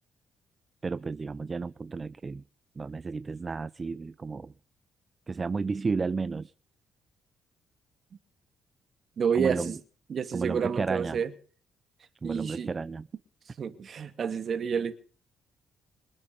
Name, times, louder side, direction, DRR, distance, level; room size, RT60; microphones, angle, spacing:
voice 1, 0.8-2.4 2.8-4.5 5.3-6.5 9.3-9.8 10.3-11.2 12.2-13.1, right 4 dB, 30° right, 0.6 m, -32 dB
voice 2, 9.2-9.8 10.1-11.3 12.2-12.7 13.6-14.9, right 7 dB, 50° right, 2.6 m, -29 dB
27.0 x 9.5 x 5.5 m
cardioid pair, 90°, 0 cm